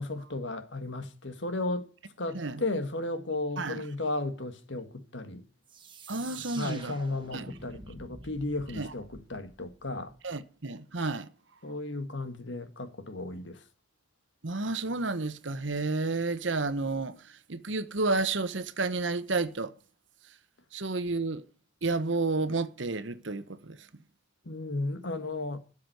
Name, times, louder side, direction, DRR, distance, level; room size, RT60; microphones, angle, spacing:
voice 1, 0.0-1.9 2.2-5.4 6.6-10.1 11.6-13.6 24.4-25.6, left 2 dB, 70° left, 1.7 m, -34 dB
sound 1, 5.7-10.2, right 3 dB, 25° right, 1.8 m, -48 dB
voice 2, 6.1-6.9 7.3-7.5 8.7-8.9 10.2-11.3 14.4-19.7 20.7-21.4 21.8-23.9, right 3 dB, 70° right, 1.1 m, -31 dB
13.0 x 7.2 x 7.9 m
head